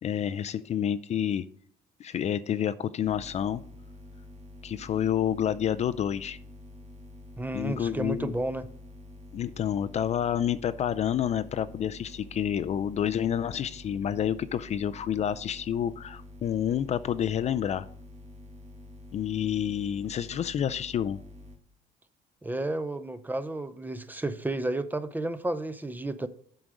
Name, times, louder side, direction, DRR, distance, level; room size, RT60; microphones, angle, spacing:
voice 1, 0.0-1.5 2.0-3.6 4.6-6.4 7.5-8.3 9.3-17.9 19.1-21.2, left 9 dB, 40° left, 0.4 m, -29 dB
sound 1, 3.0-21.6, left 1 dB, 40° right, 1.9 m, -47 dB
voice 2, 7.4-8.7 22.4-26.3, right 2 dB, 10° right, 0.5 m, -32 dB
7.6 x 5.0 x 6.1 m
cardioid pair, 110°, 17 cm